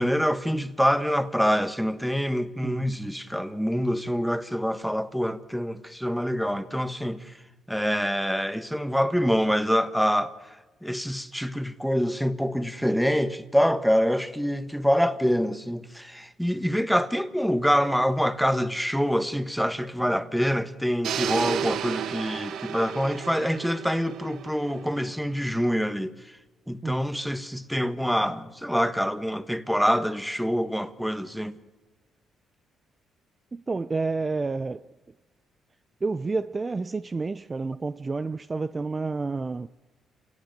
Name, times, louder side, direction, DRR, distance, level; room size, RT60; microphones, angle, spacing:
voice 1, 0.0-7.3 7.7-10.3 10.8-26.1 26.7-31.6, equal, ahead, 1.4 m, -25 dB
voice 2, 2.6-3.0 26.8-27.1 33.5-34.9 36.0-39.7, right 3 dB, 30° right, 0.6 m, -29 dB
sound 1, 21.0-25.1, right 9 dB, 75° right, 1.1 m, -32 dB
29.0 x 18.0 x 6.7 m
cardioid pair, 90°, 0 cm